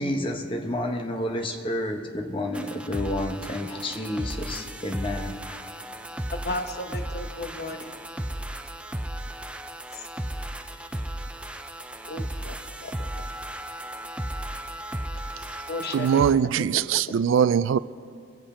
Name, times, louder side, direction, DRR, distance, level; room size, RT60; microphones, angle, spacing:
voice 1, 0.0-5.6, left 1 dB, 25° left, 1.0 m, -30 dB
sound 1, 2.5-16.3, right 1 dB, 5° right, 0.4 m, -35 dB
voice 2, 6.3-7.9 9.9-10.1 12.1-12.6 12.8-13.1 15.7-17.2, left 2 dB, 55° left, 0.9 m, -35 dB
voice 3, 15.9-17.8, right 8 dB, 85° right, 0.3 m, -21 dB
22.5 x 7.8 x 4.3 m
head